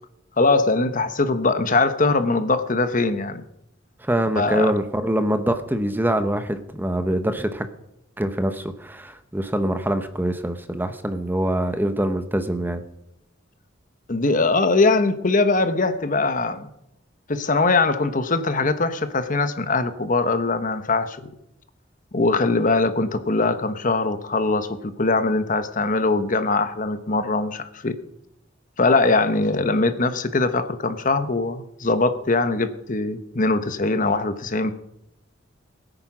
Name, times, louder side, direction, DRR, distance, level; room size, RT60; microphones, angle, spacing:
voice 1, 0.4-3.4 4.4-4.7 14.1-16.7 17.3-21.3 22.1-28.0 28.8-34.7, left 3 dB, 45° left, 10 dB, 1.0 m, -21 dB
voice 2, 4.0-7.7 8.2-12.8, right 1 dB, 10° right, 9 dB, 0.9 m, -24 dB
20.5 x 9.1 x 6.0 m, 0.81 s
head